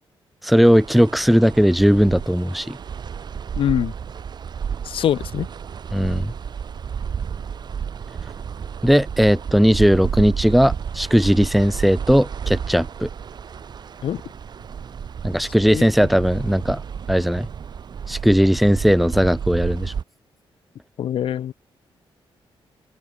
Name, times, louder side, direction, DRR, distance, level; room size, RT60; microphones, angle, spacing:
voice 1, 0.4-2.8 5.9-6.3 8.8-13.1 15.2-16.8 17.1-17.5 18.1-19.9, equal, ahead, 1.0 m, -17 dB
sound 1, 0.6-20.0, right 7 dB, 50° right, 6.2 m, -32 dB
voice 2, 3.6-3.9 4.8-5.5 14.0-14.2 15.7-15.8 21.0-21.5, left 10 dB, 70° left, 0.9 m, -23 dB
open air
wide cardioid pair, 150°, 10 cm